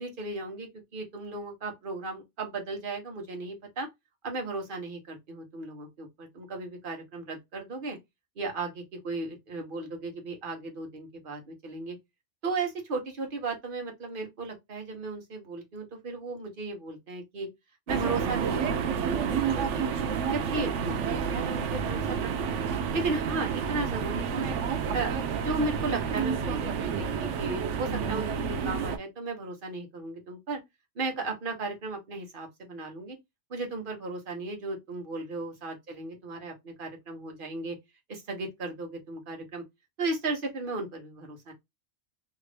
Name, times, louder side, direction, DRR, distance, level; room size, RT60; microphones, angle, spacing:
voice 1, 0.0-3.9 4.2-8.0 8.4-12.0 12.4-17.5 17.9-19.8 20.3-22.6 22.9-24.6 24.9-30.6 30.9-33.2 33.5-37.8 38.1-39.6 40.0-41.5, right 3 dB, 50° right, 1.1 m, -35 dB
sound 1, 17.9-29.0, right 7 dB, 90° right, 0.9 m, -30 dB
2.9 x 2.5 x 3.3 m
omnidirectional pair, 1.2 m